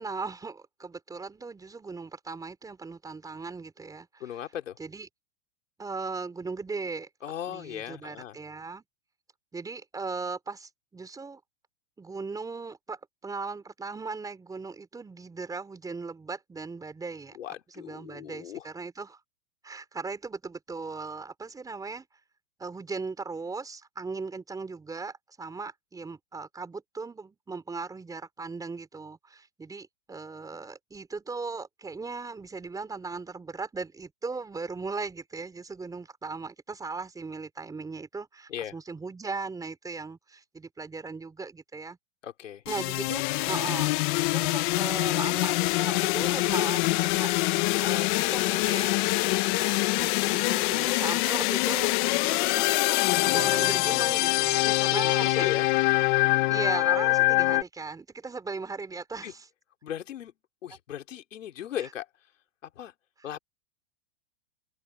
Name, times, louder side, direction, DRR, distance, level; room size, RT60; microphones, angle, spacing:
voice 1, 0.0-4.4 4.8-5.1 5.8-7.1 7.5-8.8 9.5-11.4 12.0-17.4 17.7-19.2 19.6-22.0 22.6-42.0 42.7-55.5 56.5-59.5 61.8-61.9, right 4 dB, 10° right, 4.6 m, -38 dB
voice 2, 4.2-4.8 7.2-8.4 17.3-18.7 38.5-38.7 42.2-42.6 47.7-48.0 54.6-55.7 59.2-59.3 59.8-60.3 60.6-62.1 62.6-62.9 63.2-63.4, left 10 dB, 85° left, 4.2 m, -37 dB
sound 1, 42.7-57.6, left 23 dB, 40° left, 1.0 m, -25 dB
open air
hypercardioid pair, 145°, 37 cm